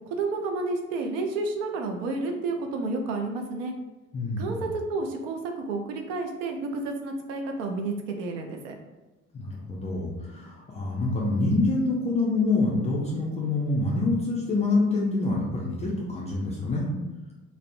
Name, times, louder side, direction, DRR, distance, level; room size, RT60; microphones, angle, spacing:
voice 1, 0.1-3.7 4.4-8.7, right 3 dB, 65° right, 3 dB, 0.5 m, -30 dB
voice 2, 4.1-4.7 9.3-16.9, left 2 dB, 15° left, -4 dB, 0.3 m, -26 dB
2.4 x 2.0 x 2.5 m, 1.1 s
figure-of-eight pair, 60°, 43 cm